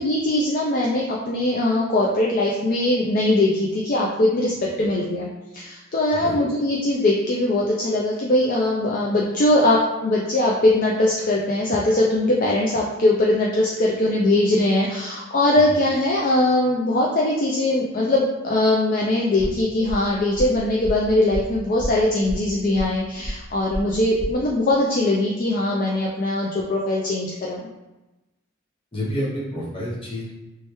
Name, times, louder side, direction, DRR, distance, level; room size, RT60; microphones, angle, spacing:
voice 1, 0.0-27.6, left 1 dB, 40° left, -3 dB, 0.4 m, -21 dB
sound 1, 19.4-24.4, equal, 5° right, 1.0 m, -32 dB
voice 2, 28.9-30.3, equal, 25° left, -5 dB, 0.9 m, -29 dB
3.3 x 3.2 x 3.0 m, 1.1 s
head